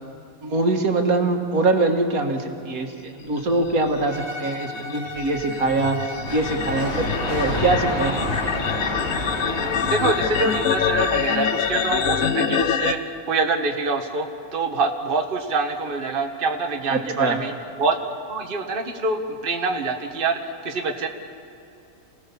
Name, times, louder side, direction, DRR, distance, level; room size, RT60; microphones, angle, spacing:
voice 1, 0.4-8.5 16.9-17.4, right 2 dB, 80° right, 4 dB, 2.1 m, -23 dB
sound 1, 3.7-12.9, left 8 dB, 75° left, 1.3 m, -25 dB
Bowed string instrument, 4.1-12.4, left 1 dB, 10° left, 3.2 m, -37 dB
sound 2, 6.2-11.8, equal, 50° left, 4.7 m, -30 dB
voice 2, 9.8-13.0 13.2-17.5 17.8-21.1, right 3 dB, 40° right, 3 dB, 1.5 m, -25 dB
28.5 x 17.5 x 7.0 m, 2.6 s
omnidirectional pair, 1.5 m